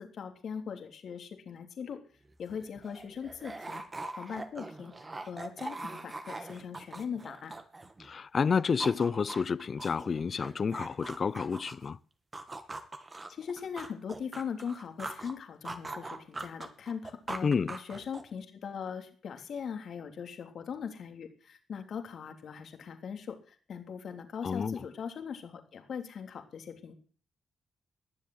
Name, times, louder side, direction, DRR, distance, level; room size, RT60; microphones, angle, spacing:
voice 1, 0.0-2.0 2.4-3.8 4.2-4.9 5.2-7.5 13.3-26.9, left 7 dB, 70° left, 3.2 m, -40 dB
sound 1, 2.2-2.3 2.6-8.1 8.4-11.9 12.3-15.3 15.6-18.4, right 2 dB, 30° right, 2.4 m, -42 dB
voice 2, 8.0-12.0 17.4-17.7 24.4-24.8, left 5 dB, 50° left, 0.7 m, -29 dB
20.5 x 7.7 x 7.9 m
cardioid pair, 60°, 0 cm